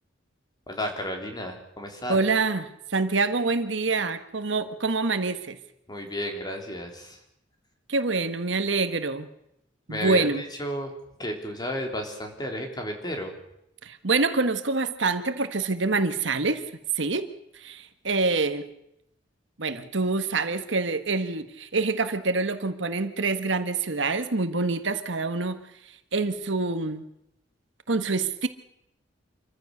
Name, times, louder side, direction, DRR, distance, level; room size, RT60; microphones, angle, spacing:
voice 1, 0.7-2.2 5.9-7.2 9.9-10.9 11.2-13.4, equal, 20° left, 3 dB, 3.6 m, -32 dB
voice 2, 2.1-5.6 7.9-9.3 9.9-10.4 13.8-16.6 17.0-18.7 19.6-25.6 26.1-27.0 27.9-28.5, right 3 dB, 70° right, 10 dB, 1.4 m, -26 dB
26.5 x 15.0 x 6.6 m, 0.81 s
head